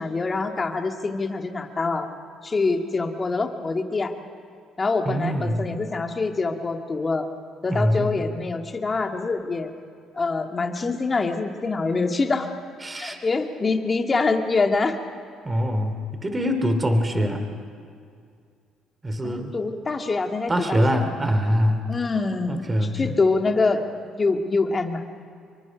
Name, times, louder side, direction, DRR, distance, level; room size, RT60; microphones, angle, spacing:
voice 1, 0.0-2.1 2.4-4.1 4.8-7.3 7.6-9.7 10.2-12.5 13.0-15.0 17.1-17.4 19.2-21.0 21.9-25.0, left 3 dB, 30° left, 4 dB, 2.1 m, -25 dB
voice 2, 5.0-5.7 7.7-8.3 12.8-13.2 13.6-13.7 15.4-17.4 19.0-19.5 20.5-21.8 22.5-23.2, equal, 20° right, 7 dB, 2.8 m, -24 dB
26.5 x 23.5 x 5.3 m, 2.3 s
supercardioid pair, 80°, 0 cm